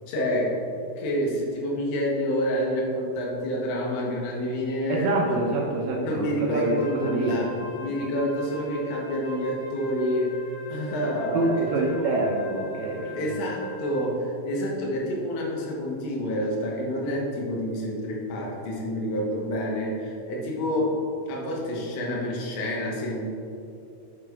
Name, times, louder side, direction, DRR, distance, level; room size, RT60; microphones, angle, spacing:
voice 1, 0.1-5.4 6.0-7.5 7.8-10.3 10.7-12.2 13.2-21.0 21.3-23.3, equal, 85° left, -3 dB, 3.9 m, -28 dB
voice 2, 4.9-6.8 7.0-7.6 11.3-13.3, right 2 dB, 75° right, -2 dB, 2.3 m, -26 dB
Wind instrument woodwind instrument, 6.5-14.2, right 2 dB, 60° left, 1.6 m, -41 dB
10.5 x 5.9 x 3.5 m, 2.7 s
omnidirectional pair, 5.5 m